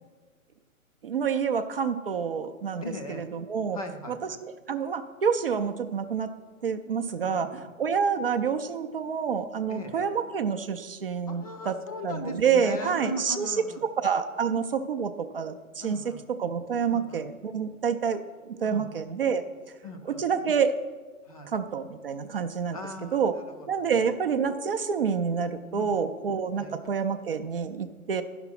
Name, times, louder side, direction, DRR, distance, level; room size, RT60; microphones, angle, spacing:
voice 1, 1.0-3.8 4.4-6.3 6.6-7.5 7.8-11.8 12.0-13.7 14.0-16.0 16.4-18.2 18.6-19.4 20.1-20.8 21.5-22.8 23.1-23.3 23.7-28.2, right 6 dB, 40° right, 7 dB, 0.5 m, -28 dB
voice 2, 2.8-3.2 3.7-4.4 7.2-7.7 9.7-10.1 11.3-13.8 15.8-16.2 16.9-17.3 18.7-19.0 19.8-20.3 21.3-21.5 22.7-23.9 25.8-26.1 26.6-26.9, left 1 dB, 25° left, 5 dB, 0.5 m, -39 dB
11.0 x 5.9 x 5.9 m, 1.4 s
hypercardioid pair, 140°, 43 cm